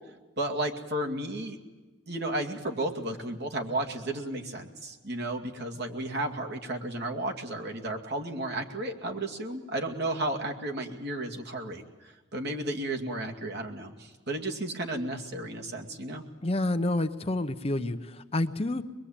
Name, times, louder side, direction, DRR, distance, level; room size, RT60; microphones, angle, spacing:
voice 1, 0.4-1.6 2.1-16.2, right 1 dB, 60° right, 2 dB, 2.3 m, -33 dB
voice 2, 16.4-18.0 18.3-18.8, left 1 dB, 30° left, 9 dB, 0.9 m, -28 dB
23.5 x 21.5 x 8.8 m, 1.2 s
head